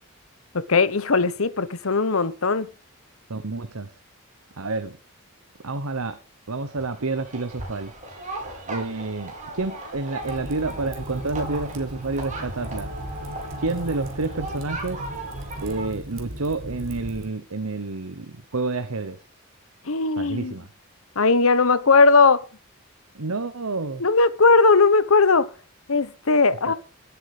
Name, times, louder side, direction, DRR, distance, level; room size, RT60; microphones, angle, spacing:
voice 1, 0.5-2.7 19.9-20.5 21.2-22.4 24.0-25.5 25.9-26.7, left 4 dB, 70° left, 1.0 m, -18 dB
voice 2, 3.3-3.9 4.6-5.0 5.6-6.2 6.5-7.9 8.7-12.9 13.6-15.0 15.6-19.2 20.2-20.7 23.1-24.0 26.7-26.8, right 3 dB, 85° right, 1.1 m, -29 dB
sound 1, 6.7-15.9, right 2 dB, 35° right, 5.3 m, -37 dB
Fire, 10.2-17.3, right 1 dB, 60° right, 3.1 m, -37 dB
16.5 x 8.1 x 5.0 m
head